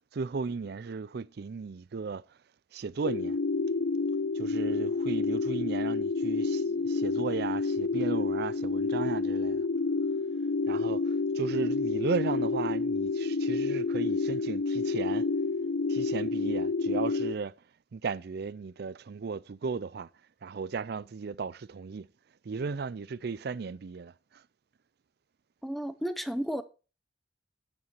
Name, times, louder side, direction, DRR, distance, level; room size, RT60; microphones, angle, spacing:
voice 1, 0.0-2.4 2.7-3.4 4.3-9.7 10.7-15.3 15.9-17.5 17.9-20.1 20.4-22.1 22.4-24.4, right 4 dB, 55° right, 0.4 m, -35 dB
sound 1, 3.0-17.3, left 3 dB, 80° left, 0.7 m, -29 dB
voice 2, 25.6-26.6, equal, ahead, 0.8 m, -32 dB
9.1 x 6.9 x 6.0 m
head